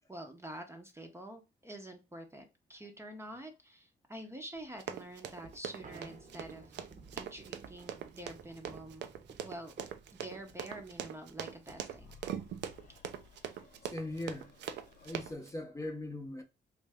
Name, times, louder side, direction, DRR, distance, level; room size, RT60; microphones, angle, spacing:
voice 1, 0.1-2.4 2.7-6.9 7.1-9.1 9.4-9.7 10.1-12.1, right 1 dB, 15° right, 0.7 m, -47 dB
sound 1, 4.6-12.7, right 4 dB, 45° right, 0.8 m, -55 dB
Run, 4.8-15.5, right 9 dB, 75° right, 0.5 m, -42 dB
sound 2, 11.9-15.4, left 5 dB, 50° left, 0.6 m, -59 dB
voice 2, 13.8-14.5 15.0-16.4, left 1 dB, 15° left, 0.7 m, -40 dB
3.2 x 2.6 x 3.4 m
cardioid pair, 80°, 18 cm